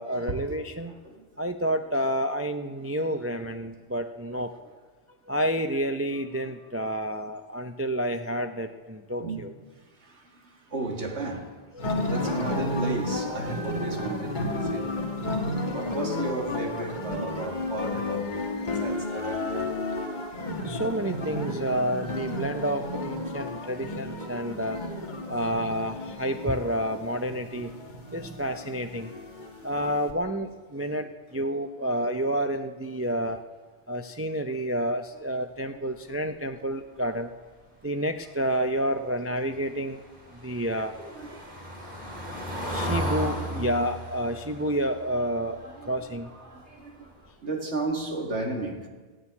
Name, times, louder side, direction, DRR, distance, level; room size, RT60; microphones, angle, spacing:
voice 1, 0.0-0.9 1.4-4.5 5.3-9.5 11.7-12.0 20.6-24.9 25.3-27.7 28.1-29.1 29.6-33.4 33.9-37.3 37.8-40.0 40.4-40.9 42.7-46.3, equal, 20° right, 0.3 m, -29 dB
voice 2, 0.8-1.2 9.2-9.4 10.0-11.6 11.9-15.2 15.7-19.6 27.5-27.7 31.8-31.9 32.2-32.3 35.7-35.8 36.1-36.2 37.0-37.1 40.7-41.6 45.6-46.1 46.4-47.1 47.4-48.9, right 2 dB, 80° right, 2.0 m, -35 dB
sound 1, 11.8-30.1, left 1 dB, 45° left, 1.6 m, -32 dB
Car passing by / Engine, 39.5-46.4 46.8-47.0 47.3-47.4, equal, 50° right, 3.8 m, -35 dB
14.0 x 7.1 x 9.5 m
omnidirectional pair, 1.1 m